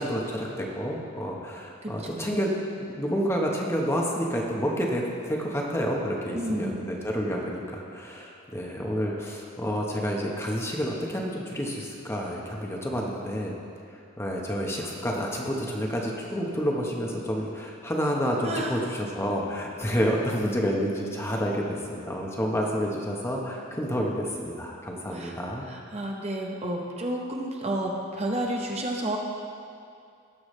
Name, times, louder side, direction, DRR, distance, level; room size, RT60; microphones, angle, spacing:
voice 1, 0.0-13.5 14.2-25.7, equal, 15° left, -2 dB, 1.1 m, -29 dB
voice 2, 1.8-2.4 6.3-6.9 18.4-18.8 25.1-25.3 25.6-29.2, right 1 dB, 30° right, 0 dB, 0.9 m, -31 dB
18.0 x 7.0 x 3.2 m, 2.4 s
head